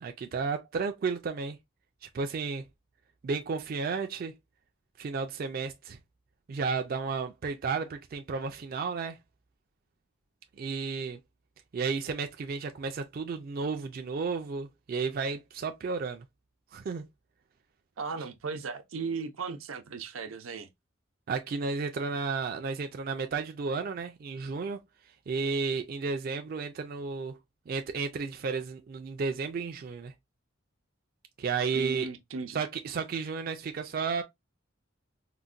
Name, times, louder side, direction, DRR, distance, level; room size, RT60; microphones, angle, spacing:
voice 1, 0.0-1.6 2.0-2.6 3.2-4.3 5.0-6.0 6.5-9.2 10.6-11.2 11.7-16.2 16.7-17.1 21.3-24.8 25.3-27.4 27.7-30.1 31.4-32.1 32.5-34.2, right 5 dB, 45° right, 0.3 m, -32 dB
voice 2, 18.0-20.7 31.7-32.6, right 4 dB, 85° right, 0.6 m, -36 dB
3.9 x 2.1 x 2.4 m
head